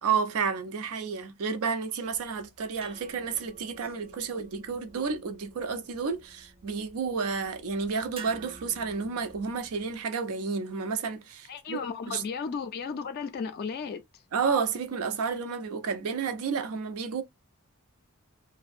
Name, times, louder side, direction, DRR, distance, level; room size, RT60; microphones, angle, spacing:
voice 1, 0.0-12.2 14.3-17.2, right 5 dB, 90° right, 0.5 m, -31 dB
sound 1, 2.0-10.0, right 4 dB, 25° right, 0.4 m, -51 dB
voice 2, 11.5-14.0, left 5 dB, 45° left, 0.3 m, -34 dB
2.5 x 2.1 x 2.4 m
head